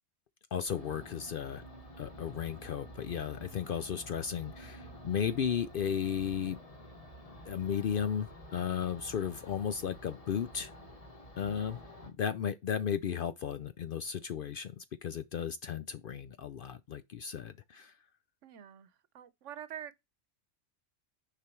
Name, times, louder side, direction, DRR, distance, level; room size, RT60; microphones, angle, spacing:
voice 1, 0.5-1.6 2.0-6.6 7.5-10.7 11.4-11.8 12.2-17.9, left 8 dB, 60° left, 0.6 m, -35 dB
sound 1, 0.7-12.1, equal, 30° left, 1.4 m, -50 dB
voice 2, 11.4-11.8 18.4-18.9 19.1-19.9, right 10 dB, 75° right, 1.1 m, -46 dB
6.8 x 4.9 x 4.4 m
omnidirectional pair, 1.3 m